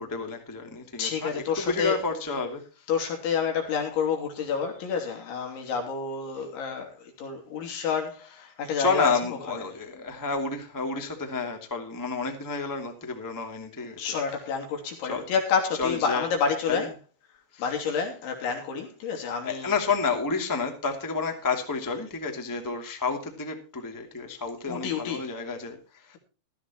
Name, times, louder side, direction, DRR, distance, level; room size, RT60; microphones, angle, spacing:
voice 1, 0.0-2.8 8.8-14.1 15.0-15.2 15.8-16.3 16.7-16.9 17.5-17.7 19.4-26.2, left 4 dB, 10° left, 1.3 m, -30 dB
voice 2, 1.0-2.0 2.9-9.1 14.0-16.9 17.6-19.7 24.7-25.3, left 6 dB, 75° left, 5.2 m, -29 dB
16.0 x 14.5 x 3.1 m
omnidirectional pair, 5.5 m